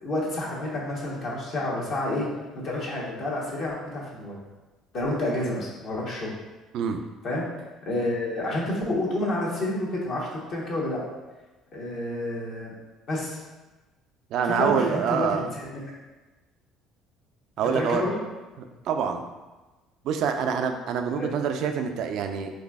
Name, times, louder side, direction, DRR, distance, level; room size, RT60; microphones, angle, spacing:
voice 1, 0.0-2.3 2.6-4.4 4.9-6.3 7.2-7.4 7.8-11.0 11.7-12.7 13.1-13.4 14.4-15.8 17.7-18.1 21.1-21.3, left 1 dB, 55° left, -5 dB, 1.0 m, -29 dB
voice 2, 14.3-15.4 17.6-18.0 18.9-19.2 20.0-22.5, right 7 dB, 65° right, 6 dB, 0.3 m, -26 dB
4.0 x 2.6 x 2.3 m, 1.2 s
hypercardioid pair, 60°, 0 cm